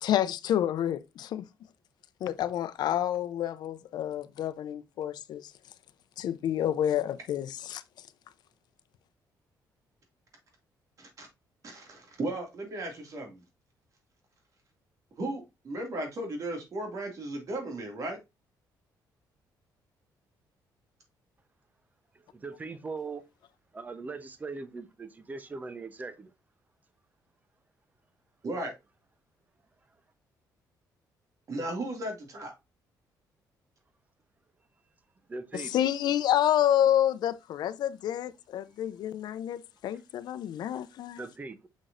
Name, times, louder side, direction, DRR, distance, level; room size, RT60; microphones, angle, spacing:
voice 1, 0.0-1.4 2.2-5.5 6.2-7.8 35.5-41.2, left 11 dB, 70° left, 0.6 m, -29 dB
voice 2, 11.6-13.4 15.2-18.2 28.4-28.7 31.5-32.5, right 1 dB, 45° right, 2.3 m, -35 dB
voice 3, 22.3-23.2 23.7-26.3 35.3-35.7 41.2-41.7, right 4 dB, 20° right, 0.8 m, -40 dB
6.2 x 5.9 x 2.6 m
cardioid pair, 125°, 7 cm